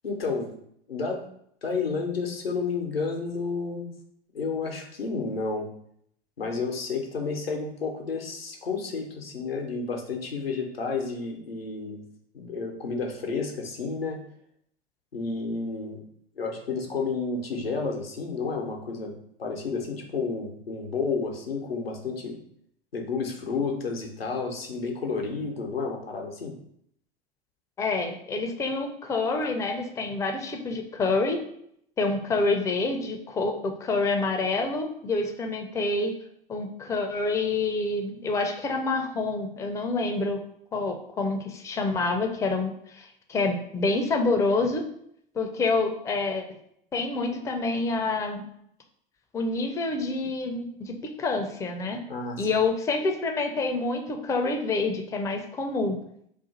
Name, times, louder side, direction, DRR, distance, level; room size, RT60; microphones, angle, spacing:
voice 1, 0.0-0.5 0.9-1.2 1.6-3.9 4.3-5.7 6.4-12.0 12.3-14.2 15.1-16.0 16.4-19.1 19.4-22.4 22.9-26.5 52.1-52.5, left 4 dB, 85° left, 1 dB, 0.7 m, -31 dB
voice 2, 27.8-31.4 32.0-36.1 36.5-40.4 40.7-44.8 45.3-46.4 46.9-48.4 49.3-52.0 52.4-56.0, left 3 dB, 10° left, 3 dB, 0.4 m, -27 dB
2.5 x 2.4 x 3.9 m, 0.70 s
figure-of-eight pair, 80°, 29 cm